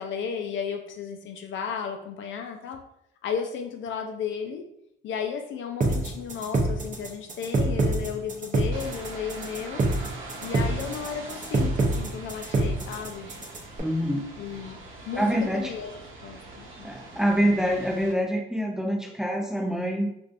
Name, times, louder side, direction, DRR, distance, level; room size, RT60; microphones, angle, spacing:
voice 1, 0.0-2.8 3.2-4.6 5.0-9.8 10.4-13.3 14.4-14.8 15.1-16.0 16.2-16.9, left 7 dB, 75° left, 4 dB, 0.5 m, -34 dB
sound 1, 5.8-13.8, right 2 dB, 40° right, 0.7 m, -25 dB
sound 2, 8.7-18.1, right 2 dB, 75° right, 0.8 m, -43 dB
voice 2, 13.8-14.2 15.1-15.7 16.8-20.1, equal, 5° right, 0 dB, 0.6 m, -25 dB
3.2 x 2.5 x 2.5 m, 0.74 s
cardioid pair, 90°, 20 cm